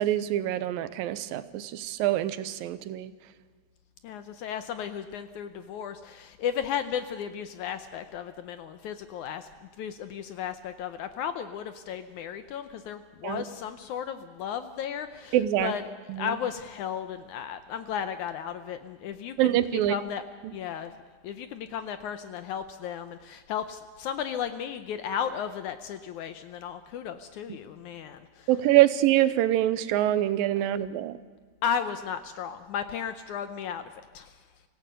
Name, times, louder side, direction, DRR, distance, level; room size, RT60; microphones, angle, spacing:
voice 1, 0.0-3.1 13.2-13.5 15.3-15.7 16.1-16.4 19.4-20.0 28.5-31.2, right 13 dB, 85° right, 13 dB, 2.5 m, -25 dB
voice 2, 4.0-9.5 9.8-15.4 15.6-15.8 16.2-19.3 19.7-20.2 20.5-20.9 21.2-28.5 31.6-34.3, left 8 dB, 75° left, 10 dB, 1.9 m, -34 dB
25.0 x 16.5 x 6.8 m, 1.5 s
omnidirectional pair, 4.1 m